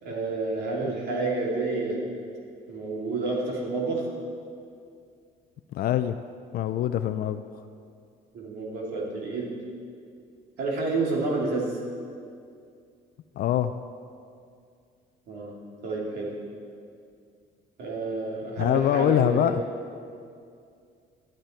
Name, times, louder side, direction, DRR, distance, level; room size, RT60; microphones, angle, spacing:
voice 1, 0.0-2.0 2.7-4.1 8.3-9.5 10.6-11.8 15.3-15.5 15.8-16.3 17.8-19.5, right 3 dB, 70° right, -2 dB, 3.0 m, -29 dB
voice 2, 5.7-6.2 6.5-7.4 13.4-13.7 18.6-19.6, left 11 dB, 60° left, 10 dB, 0.5 m, -24 dB
13.0 x 12.5 x 4.5 m, 2.3 s
cardioid pair, 110°, 17 cm